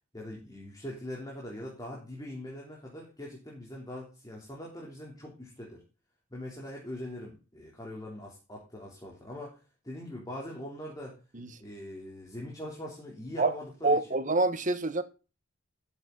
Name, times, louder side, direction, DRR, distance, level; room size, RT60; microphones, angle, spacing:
voice 1, 0.1-5.8 6.3-9.6 9.8-11.2 11.6-14.0, left 1 dB, 20° left, 3.5 m, -42 dB
voice 2, 13.8-15.0, right 3 dB, 40° right, 1.4 m, -26 dB
13.5 x 8.4 x 4.0 m
head